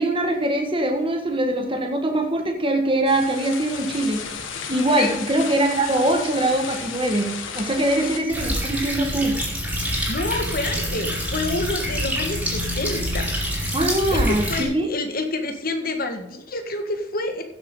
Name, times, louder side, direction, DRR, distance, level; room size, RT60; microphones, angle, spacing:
voice 1, 0.0-4.2 4.7-9.4 13.7-14.9, right 1 dB, 25° right, 3 dB, 1.7 m, -22 dB
sound 1, 3.1-8.2, left 6 dB, 80° left, 1.7 m, -33 dB
sound 2, 8.3-14.6, equal, 5° right, 5.4 m, -26 dB
voice 2, 10.1-13.3 14.1-17.4, left 2 dB, 50° left, 5 dB, 1.7 m, -28 dB
15.5 x 8.3 x 3.9 m, 0.83 s
head